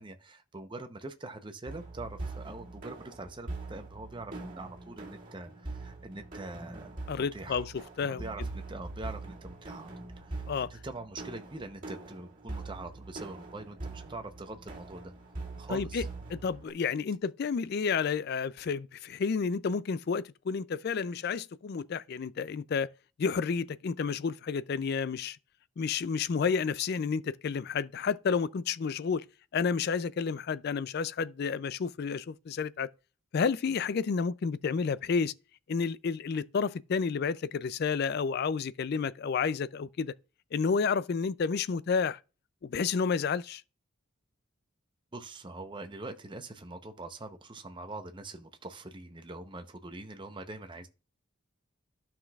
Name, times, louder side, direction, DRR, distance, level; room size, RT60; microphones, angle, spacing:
voice 1, 0.0-7.7 8.1-9.9 10.2-15.1 15.6-16.1 45.1-50.9, right 2 dB, 20° right, 0.7 m, -43 dB
sound 1, 1.7-16.7, right 2 dB, 40° right, 2.1 m, -43 dB
voice 2, 7.1-7.7 8.0-8.2 10.5-10.7 15.7-16.1 16.3-22.9 23.2-25.4 25.8-29.2 29.5-32.9 33.3-35.3 35.7-40.1 40.5-42.2 42.6-43.6, left 5 dB, 50° left, 0.3 m, -30 dB
12.5 x 5.9 x 2.3 m
head